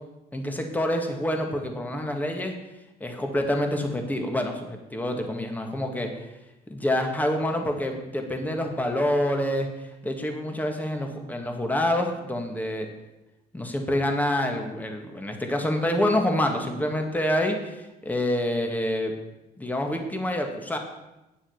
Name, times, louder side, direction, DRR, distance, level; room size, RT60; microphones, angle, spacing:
voice 1, 0.3-2.5 3.0-6.3 6.7-12.9 13.5-19.1 19.6-20.8, left 1 dB, 10° left, 3 dB, 1.8 m, -27 dB
9.5 x 7.2 x 7.2 m, 0.98 s
cardioid pair, 110°, 17 cm